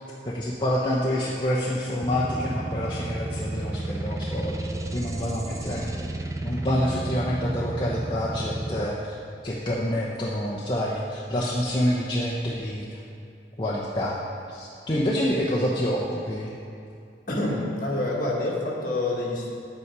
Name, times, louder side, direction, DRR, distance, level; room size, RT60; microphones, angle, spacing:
voice 1, 0.2-9.2 9.4-13.0 13.6-14.2 14.5-16.5, equal, 25° left, -6 dB, 0.8 m, -27 dB
sound 1, 2.0-8.9, right 2 dB, 15° right, 0.4 m, -32 dB
voice 2, 17.3-19.5, left 2 dB, 50° left, -4 dB, 1.8 m, -27 dB
9.6 x 8.4 x 4.7 m, 2.5 s
head